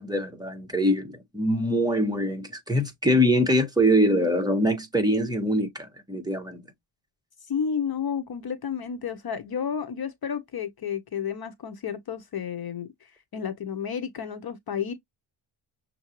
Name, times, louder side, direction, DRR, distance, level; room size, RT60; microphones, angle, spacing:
voice 1, 0.0-6.6, equal, 10° right, 1.4 m, -23 dB
voice 2, 7.5-12.9 13.3-14.9, left 7 dB, 50° left, 0.8 m, -31 dB
6.5 x 2.6 x 3.0 m
cardioid pair, 110°, 49 cm